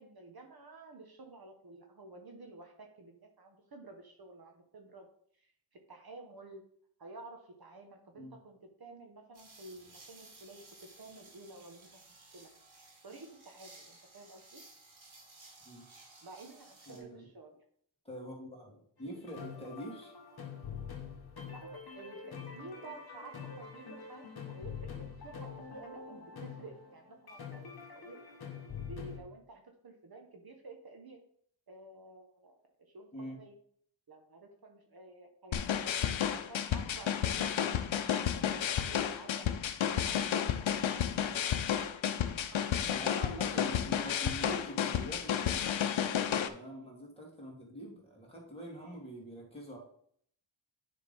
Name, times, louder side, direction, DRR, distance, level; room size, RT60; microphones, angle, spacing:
voice 1, 0.0-5.1 5.3-5.5 5.9-6.6 7.0-11.9 12.2-12.5 13.0-14.6 16.2-17.6 21.4-28.2 28.8-31.2 31.7-33.6 34.1-36.1 36.3-39.5 39.9-40.6 42.8-43.3, right 2 dB, 50° right, 3 dB, 1.1 m, -52 dB
sound 1, 9.3-17.0, right 2 dB, 85° right, 2.6 m, -57 dB
voice 2, 16.9-17.3 18.0-20.1 33.1-33.4 42.9-45.6 46.4-49.8, equal, 10° left, -2 dB, 2.6 m, -45 dB
sound 2, 19.1-29.2, left 6 dB, 55° left, 1.6 m, -45 dB
sound 3, 35.5-46.5, left 9 dB, 80° left, 0.7 m, -32 dB
9.9 x 3.8 x 5.3 m, 0.64 s
wide cardioid pair, 120°, 46 cm